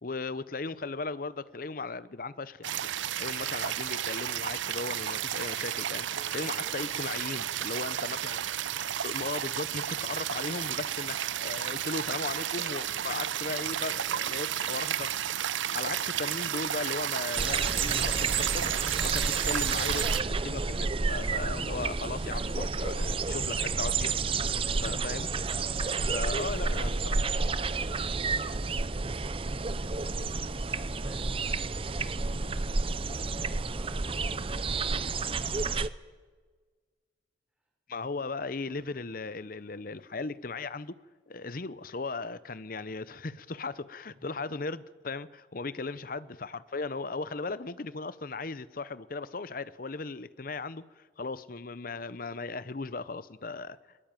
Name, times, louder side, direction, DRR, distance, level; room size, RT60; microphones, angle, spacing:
voice 1, 0.0-2.8 3.2-6.1 6.3-8.5 9.0-15.2 15.7-24.1 24.8-25.3 26.1-26.9 27.2-27.3 37.9-41.0 41.3-50.8 51.2-53.8, left 3 dB, 50° left, 0.8 m, -37 dB
sound 1, 2.6-20.2, right 10 dB, 80° right, 0.6 m, -32 dB
voice 2, 6.1-6.9 24.6-29.9 30.5-35.1, equal, 5° right, 5.8 m, -51 dB
sound 2, 17.4-35.9, right 4 dB, 30° right, 0.6 m, -30 dB
21.0 x 21.0 x 9.0 m
head